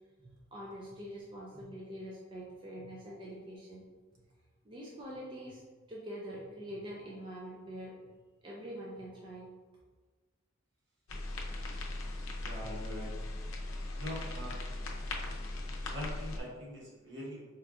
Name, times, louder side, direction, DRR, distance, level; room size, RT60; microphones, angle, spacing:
voice 1, 0.2-3.9 4.2-4.3 4.6-8.1 8.4-9.5, equal, 25° right, -4 dB, 0.4 m, -45 dB
sound 1, 11.1-16.4, left 2 dB, 80° left, 0.5 m, -39 dB
voice 2, 12.3-13.1 14.0-14.6 15.9-17.5, left 1 dB, 60° right, -5 dB, 1.1 m, -43 dB
4.2 x 2.4 x 2.4 m, 1.4 s
head